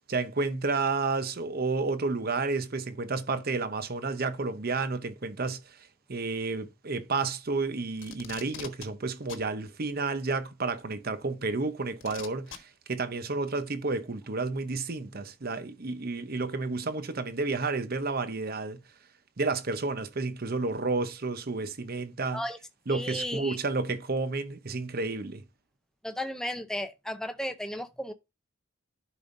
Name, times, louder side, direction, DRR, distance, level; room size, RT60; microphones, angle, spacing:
voice 1, 0.1-5.8 6.1-18.8 19.4-22.4 22.9-25.4, right 3 dB, 45° right, 0.8 m, -31 dB
Packing tape duct tape, 8.0-8.9 9.3-9.5 10.8-10.9 12.0-12.6 13.7-13.8, left 7 dB, 60° left, 1.3 m, -42 dB
voice 2, 22.9-23.6 26.0-28.1, left 1 dB, 5° left, 0.5 m, -34 dB
11.0 x 5.2 x 2.6 m
head